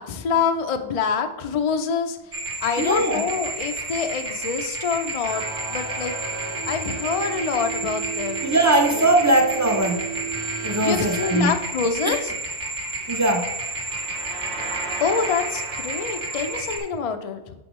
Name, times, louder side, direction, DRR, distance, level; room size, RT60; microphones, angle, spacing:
voice 1, 0.0-2.2 2.6-6.2 6.6-8.5 8.9-9.1 10.8-12.3 15.0-17.5, left 5 dB, 60° left, 7 dB, 0.3 m, -26 dB
sound 1, 2.3-16.8, right 2 dB, 50° right, 1.1 m, -31 dB
voice 2, 2.8-3.2 8.4-10.0 10.6-11.6 12.0-12.2 13.1-13.5, right 1 dB, 30° right, 3 dB, 0.3 m, -20 dB
sound 2, 5.3-11.4, right 6 dB, 75° right, 1.4 m, -34 dB
6.9 x 5.6 x 3.0 m, 0.95 s
omnidirectional pair, 1.2 m